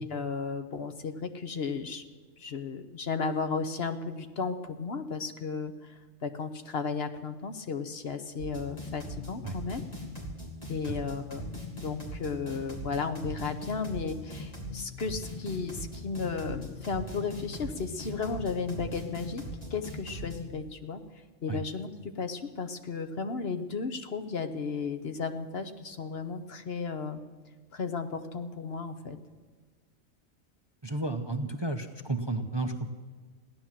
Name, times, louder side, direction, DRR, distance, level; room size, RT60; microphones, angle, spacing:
voice 1, 0.0-2.0 2.4-5.9 6.2-9.8 10.7-19.4 19.7-21.0 21.4-27.2 27.7-29.2, left 5 dB, 55° left, 8 dB, 1.2 m, -34 dB
sound 1, 8.4-20.4, left 1 dB, 30° left, 3.1 m, -40 dB
voice 2, 30.8-32.9, right 2 dB, 25° right, 7 dB, 0.7 m, -32 dB
16.0 x 11.0 x 7.4 m, 1.5 s
omnidirectional pair, 1.3 m